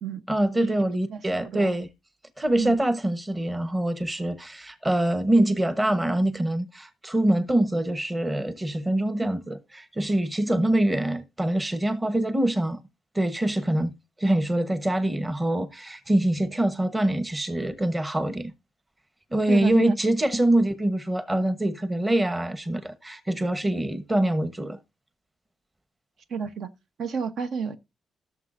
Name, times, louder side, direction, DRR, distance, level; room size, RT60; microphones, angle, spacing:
voice 1, 0.3-1.9 2.4-12.8 13.1-13.9 14.2-18.5 19.3-24.8, right 1 dB, 15° right, 1.1 m, -24 dB
voice 2, 1.1-1.7 2.6-2.8 9.2-9.3 10.5-10.6 19.5-19.9 26.3-26.7 27.0-27.7, right 6 dB, 65° right, 0.9 m, -31 dB
16.0 x 6.9 x 2.6 m
cardioid pair, 125°, 0 cm